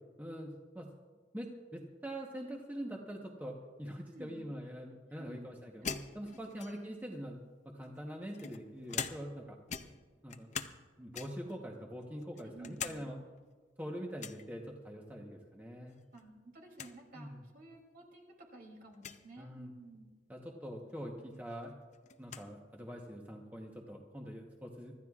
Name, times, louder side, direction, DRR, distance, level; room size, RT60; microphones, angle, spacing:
voice 1, 0.2-0.9 1.3-9.9 10.2-10.5 11.0-13.2 13.8-16.0 17.1-17.4 19.4-19.7 20.3-21.7 22.2-24.9, equal, 10° right, 0 dB, 1.0 m, -44 dB
voice 2, 4.1-4.5 5.2-5.5 6.6-6.8 12.3-13.0 16.1-20.1, right 2 dB, 55° right, 1 dB, 2.9 m, -53 dB
sound 1, 5.8-7.0 7.8-9.4 9.7-10.8 11.1-11.5 12.0-13.0 13.3-13.4 14.2-14.5 15.9-16.2 16.5-16.6 16.8-16.9 17.8-17.9 18.9-19.2 20.9-21.0 21.3-22.5, left 7 dB, 40° left, 0.6 m, -43 dB
25.0 x 14.0 x 2.4 m, 1.4 s
head